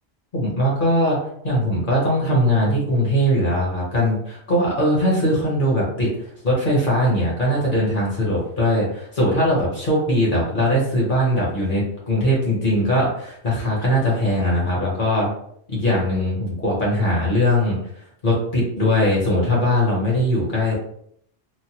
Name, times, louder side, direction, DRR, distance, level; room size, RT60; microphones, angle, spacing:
voice 1, 0.3-1.2 1.4-15.3 15.7-17.8 18.2-20.7, equal, 50° left, -4 dB, 1.2 m, -20 dB
3.2 x 2.1 x 2.8 m, 0.68 s
omnidirectional pair, 1.2 m